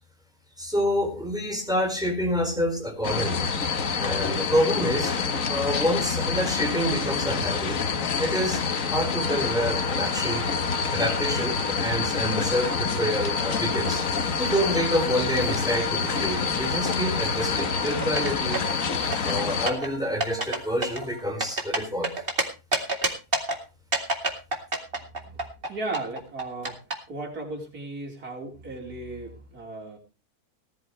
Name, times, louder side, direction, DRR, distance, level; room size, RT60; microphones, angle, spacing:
voice 1, 0.6-3.5 4.0-5.1 5.5-7.8 8.2-10.5 10.9-14.0 14.4-18.6 19.2-22.1, equal, ahead, 2 dB, 4.6 m, -27 dB
sound 1, 3.0-19.7, left 5 dB, 60° left, 1.6 m, -27 dB
sound 2, 9.2-21.2, equal, 90° left, 5.1 m, -37 dB
sound 3, 18.0-18.8 19.1-19.9 20.2-20.6 20.8-22.4 22.7-23.6 23.9-25.7 25.9-26.9, right 2 dB, 35° right, 2.6 m, -26 dB
voice 2, 25.0-26.8 27.1-30.0, right 2 dB, 75° right, -1 dB, 4.6 m, -36 dB
19.0 x 12.5 x 3.2 m, 0.30 s
omnidirectional pair, 1.6 m